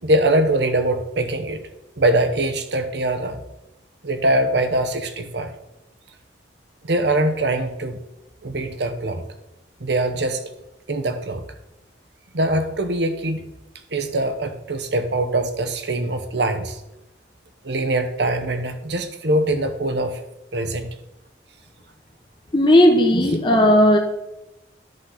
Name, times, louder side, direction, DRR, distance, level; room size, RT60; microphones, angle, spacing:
voice 1, 0.0-1.6 2.0-3.4 4.0-5.5 6.8-8.0 8.4-9.2 9.8-10.4 10.9-11.4 12.3-13.5 13.9-16.8 17.6-20.2 20.5-20.9, right 1 dB, 70° right, 7 dB, 0.9 m, -22 dB
voice 2, 22.5-24.0, left 1 dB, 25° left, 2 dB, 0.9 m, -15 dB
10.5 x 3.9 x 5.7 m, 0.91 s
head